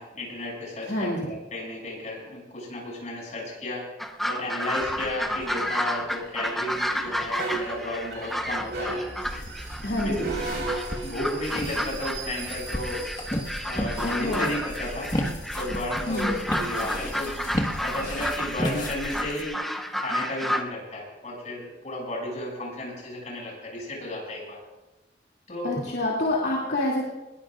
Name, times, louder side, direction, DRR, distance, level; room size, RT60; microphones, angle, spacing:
voice 1, 0.0-3.8 4.2-9.0 9.9-10.6 11.0-13.0 13.6-15.1 15.5-17.5 17.8-19.6 19.9-24.6 25.5-25.7, left 1 dB, 45° left, -3 dB, 7.0 m, -33 dB
voice 2, 0.8-1.3 9.8-10.3 14.0-14.5 16.1-16.3 25.6-27.0, left 1 dB, 65° left, -4 dB, 2.8 m, -27 dB
sound 1, 4.0-20.6, equal, ahead, 0.7 m, -31 dB
sound 2, 4.8-18.3, right 3 dB, 75° right, 4.3 m, -38 dB
sound 3, 9.2-19.4, left 1 dB, 25° left, 1.6 m, -34 dB
21.0 x 19.5 x 2.5 m, 1.0 s
head